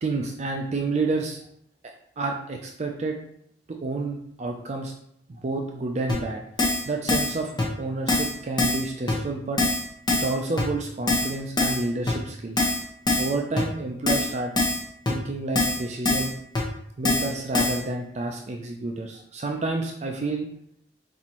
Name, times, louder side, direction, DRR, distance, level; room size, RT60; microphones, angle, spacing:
voice 1, 0.0-1.4 2.2-3.2 3.7-4.9 5.3-7.5 7.8-9.6 10.1-12.7 13.2-14.5 15.1-16.3 17.0-20.5, right 3 dB, 40° right, 2 dB, 0.4 m, -29 dB
Keyboard (musical), 6.1-6.2 6.6-6.8 7.1-7.3 7.6-7.7 8.1-8.3 8.6-8.8 9.1-9.2 9.6-9.8 10.1-10.3 10.6-10.7 11.1-11.3 11.6-11.8 12.1-12.2 12.6-12.8 13.1-13.3 13.6-13.7 14.1-14.3 14.6-14.8 15.1-15.2 15.6-15.8 16.1-16.3 16.6-16.7 17.1-17.3 17.5-17.8, left 2 dB, 25° left, 1.1 m, -23 dB
4.3 x 4.2 x 3.0 m, 0.71 s
head